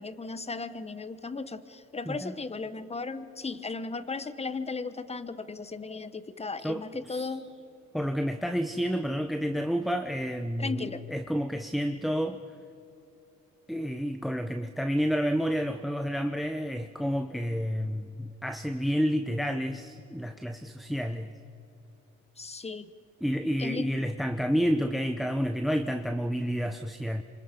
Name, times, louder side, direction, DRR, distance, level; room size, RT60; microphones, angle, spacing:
voice 1, 0.0-7.5 10.6-11.0 22.4-22.9 23.6-23.9, left 4 dB, 20° left, 13 dB, 1.2 m, -36 dB
voice 2, 2.0-2.3 6.6-7.4 7.9-12.4 13.7-21.3 23.2-27.2, equal, ahead, 9 dB, 0.9 m, -30 dB
27.5 x 25.5 x 5.3 m, 2.8 s
cardioid pair, 80°, 29 cm